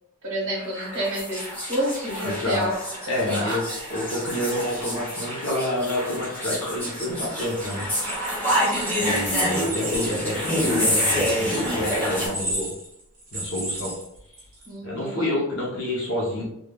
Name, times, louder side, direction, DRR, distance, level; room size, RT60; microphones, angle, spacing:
voice 1, 0.2-2.7 3.1-3.6 8.5-8.9 14.7-15.3, right 1 dB, 60° right, -4 dB, 1.1 m, -29 dB
sound 1, 0.6-12.3, equal, 10° left, 0.8 m, -27 dB
voice 2, 2.2-2.7 3.1-3.6 3.9-7.9 9.0-12.7 13.3-13.9 14.8-16.4, left 1 dB, 60° left, -3 dB, 0.7 m, -28 dB
sound 2, 7.4-14.7, right 1 dB, 40° right, 0.9 m, -35 dB
3.2 x 2.3 x 2.2 m, 0.78 s
head